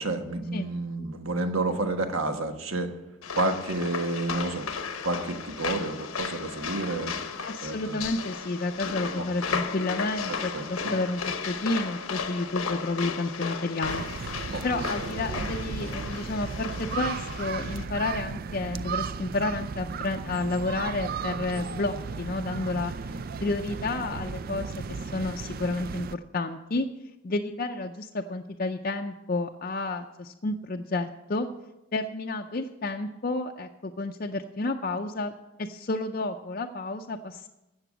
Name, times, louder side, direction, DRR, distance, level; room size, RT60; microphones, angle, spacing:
voice 1, 0.0-2.9 3.4-4.7 5.0-7.2 7.6-8.0 9.2-9.6 10.3-10.9 14.5-14.9, right 2 dB, 75° right, 6 dB, 1.3 m, -30 dB
sound 1, 3.2-17.8, left 5 dB, 85° left, 1.0 m, -35 dB
voice 2, 7.4-14.3 14.6-22.9 23.4-26.9 27.2-31.5 31.9-35.3 35.6-37.5, left 2 dB, 40° left, 2 dB, 0.5 m, -31 dB
sound 2, 13.8-26.2, right 5 dB, 45° right, 0.4 m, -35 dB
13.5 x 8.0 x 6.1 m, 0.96 s
head